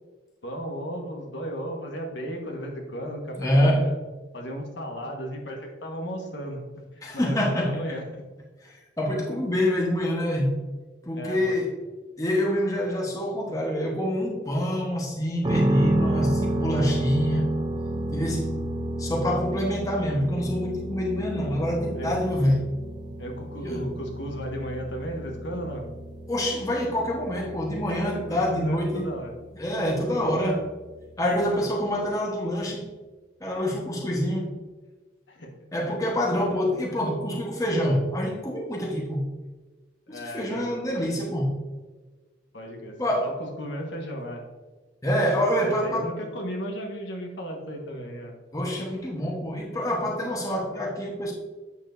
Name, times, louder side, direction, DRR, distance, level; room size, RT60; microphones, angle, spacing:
voice 1, 0.4-4.0 4.3-6.6 6.9-8.3 11.1-11.7 21.9-22.2 23.2-25.9 27.9-29.3 30.1-30.4 35.3-35.5 40.1-41.1 42.5-44.4 45.6-48.3, equal, 75° left, 1 dB, 1.4 m, -35 dB
voice 2, 3.4-3.9 7.0-7.8 8.7-10.6 11.0-11.7 12.2-17.5 18.1-18.5 19.0-22.7 23.6-23.9 26.3-29.1 29.5-30.7 31.2-32.9 33.4-34.5 35.7-39.3 40.1-41.6 43.0-43.3 45.0-46.1 48.5-51.3, equal, 20° left, -2 dB, 1.1 m, -26 dB
sound 1, 15.4-31.3, right 1 dB, 25° right, 0.6 m, -32 dB
8.4 x 7.1 x 2.6 m, 1.3 s
head